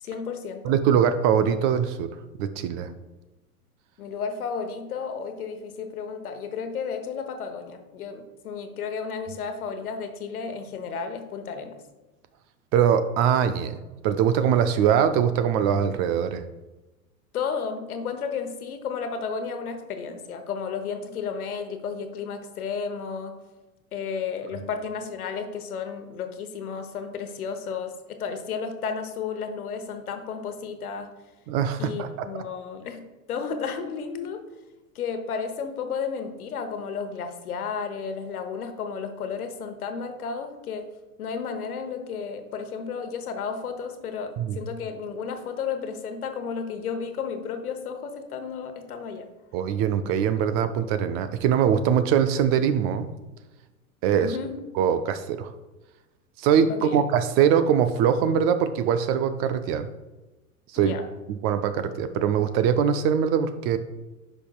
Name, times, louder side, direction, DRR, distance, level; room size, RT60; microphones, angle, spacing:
voice 1, 0.0-0.8 4.0-11.8 17.3-23.4 23.9-31.1 31.8-34.4 34.9-40.9 41.2-49.3 54.2-54.5 56.7-57.0 60.8-61.0, left 6 dB, 80° left, 7 dB, 1.0 m, -33 dB
voice 2, 0.6-2.1 2.4-2.9 12.7-13.8 14.0-16.4 31.5-32.3 44.4-44.6 49.5-53.1 54.0-54.4 54.8-55.5 56.4-59.9 60.7-60.9 61.3-63.8, right 8 dB, 35° right, 11 dB, 0.4 m, -22 dB
10.0 x 5.5 x 2.3 m, 1.1 s
hypercardioid pair, 95°, 43 cm